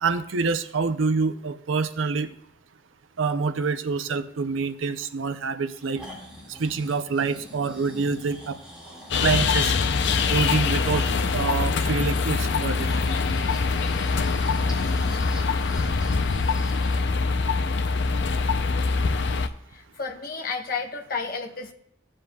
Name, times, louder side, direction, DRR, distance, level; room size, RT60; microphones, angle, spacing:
voice 1, 0.0-2.3 3.2-6.0 6.5-8.6 9.2-9.7 10.3-11.0 11.3-12.9, right 4 dB, 85° right, 12 dB, 0.5 m, -26 dB
Breathing, 5.6-17.1 17.5-17.6, left 1 dB, 5° right, 2.0 m, -43 dB
sound 1, 9.1-19.5, left 4 dB, 65° left, 0.5 m, -24 dB
voice 2, 19.7-21.7, left 4 dB, 45° left, 1 dB, 1.0 m, -32 dB
15.5 x 7.5 x 2.3 m, 0.72 s
head